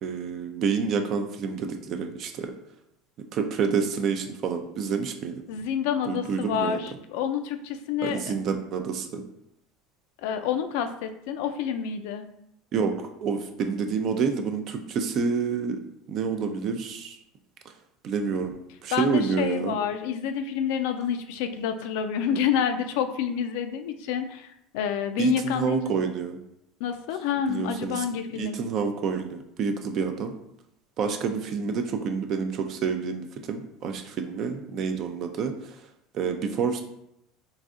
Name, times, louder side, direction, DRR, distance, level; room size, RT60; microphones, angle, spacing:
voice 1, 0.0-2.5 3.3-5.3 6.1-6.8 8.0-9.2 12.7-12.9 13.2-15.8 16.1-17.2 18.0-18.5 18.8-19.7 25.2-26.4 27.5-28.1 28.3-30.3 31.0-35.8 36.1-36.8, right 5 dB, 50° right, 6 dB, 0.4 m, -28 dB
voice 2, 5.5-8.3 10.2-12.3 18.9-25.9 26.8-28.6, left 8 dB, 70° left, 8 dB, 0.3 m, -28 dB
4.0 x 2.5 x 2.4 m, 0.79 s
hypercardioid pair, 85°, 0 cm